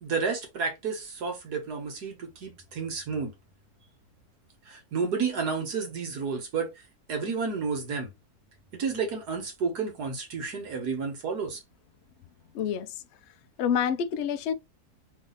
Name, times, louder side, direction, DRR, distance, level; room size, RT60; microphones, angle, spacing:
voice 1, 0.0-3.3 4.7-6.7 7.1-8.1 8.7-11.6, right 5 dB, 85° right, 2.1 m, -31 dB
voice 2, 12.5-13.0 13.6-14.5, left 8 dB, 65° left, 0.7 m, -27 dB
3.9 x 2.7 x 4.0 m
omnidirectional pair, 1.6 m